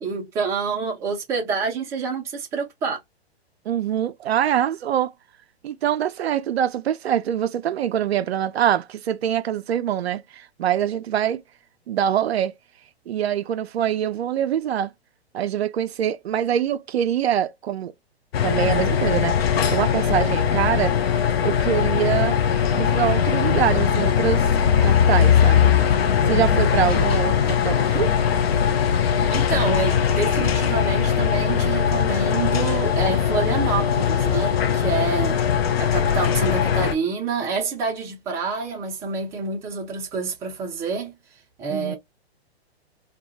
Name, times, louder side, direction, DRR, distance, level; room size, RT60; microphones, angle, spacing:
voice 1, 0.0-3.0 29.3-35.4 35.8-41.1 41.6-42.0, right 4 dB, 10° right, 0.4 m, -27 dB
voice 2, 3.7-5.1 5.6-11.4 11.9-12.5 13.1-14.9 15.3-17.9 18.4-19.4 19.7-21.0 21.4-22.4 22.7-24.5 24.8-25.7 26.3-28.1 41.7-42.0, right 10 dB, 70° right, 0.5 m, -24 dB
sound 1, 18.3-36.9, left 8 dB, 65° left, 0.6 m, -20 dB
2.2 x 2.1 x 2.7 m
figure-of-eight pair, 120°, 33 cm